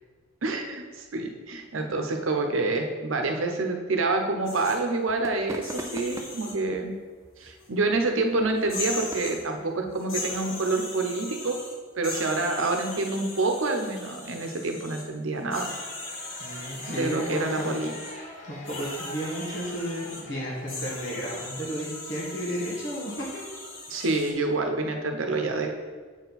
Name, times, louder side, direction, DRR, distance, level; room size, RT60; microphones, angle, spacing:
voice 1, 0.4-6.9 7.4-11.6 12.0-15.7 16.9-17.9 23.9-25.7, right 3 dB, 80° right, 4 dB, 0.8 m, -27 dB
sound 1, 4.5-4.8 5.5-6.6 7.6-7.7 8.6-9.4 9.9-11.7 12.0-15.1 15.5-18.1 18.6-20.2 20.7-24.3, left 2 dB, 80° left, 1.4 m, -39 dB
sound 2, 4.9-10.4, right 1 dB, 15° right, 0.4 m, -43 dB
sound 3, 15.3-21.2, left 1 dB, 35° left, 0.8 m, -45 dB
voice 2, 16.4-17.7 18.1-23.2, equal, 60° left, -5 dB, 1.6 m, -33 dB
7.5 x 4.5 x 4.1 m, 1.5 s
head